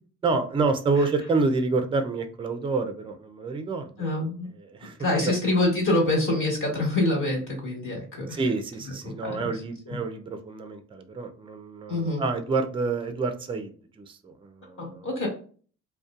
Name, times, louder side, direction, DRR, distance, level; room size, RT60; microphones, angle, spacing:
voice 1, 0.2-4.1 4.6-5.0 5.3-5.4 8.3-15.1, right 3 dB, 20° right, 8 dB, 0.3 m, -28 dB
voice 2, 4.0-4.5 5.0-8.4 9.0-9.5 9.8-10.0 11.9-12.2 14.8-15.3, left 2 dB, 45° left, -3 dB, 1.2 m, -26 dB
2.6 x 2.1 x 2.3 m, 0.42 s
cardioid pair, 90°, 30 cm